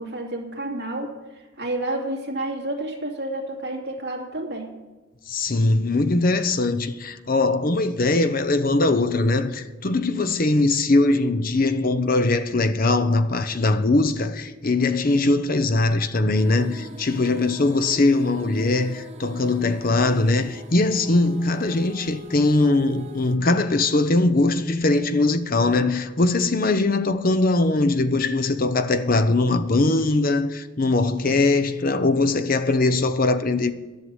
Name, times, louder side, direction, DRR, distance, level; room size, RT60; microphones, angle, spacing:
voice 1, 0.0-4.7, right 1 dB, 55° right, 2.6 m, -30 dB
voice 2, 5.3-33.7, left 2 dB, 45° left, 0.7 m, -21 dB
sound 1, 16.3-23.4, right 1 dB, 35° right, 1.1 m, -43 dB
11.5 x 6.7 x 9.6 m
head